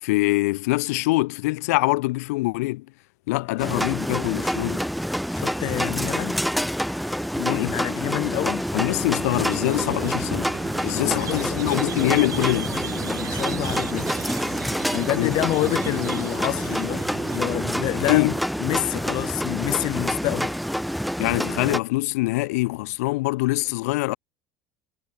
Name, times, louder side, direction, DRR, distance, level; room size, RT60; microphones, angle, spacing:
voice 1, 0.0-2.8 3.3-4.9 7.5-7.8 8.7-10.6 10.8-12.7 15.2-15.3 18.1-18.3 21.2-24.2, left 21 dB, 90° left, 1.3 m, -24 dB
sound 1, 3.6-21.8, equal, ahead, 1.7 m, -27 dB
voice 2, 5.3-6.4 7.3-8.7 10.9-14.1 14.9-20.6, left 19 dB, 60° left, 1.5 m, -28 dB
Squeak, 9.4-18.2, right 12 dB, 45° right, 1.2 m, -36 dB
supercardioid pair, 120°, 8 cm